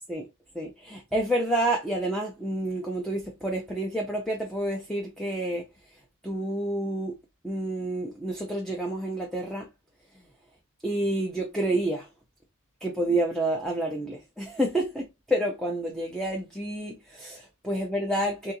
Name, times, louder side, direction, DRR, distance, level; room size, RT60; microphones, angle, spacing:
voice 1, 0.5-5.7 6.2-7.2 7.4-9.7 10.8-12.1 12.8-18.5, right 1 dB, ahead, 0.6 m, -29 dB
4.0 x 2.9 x 2.7 m
head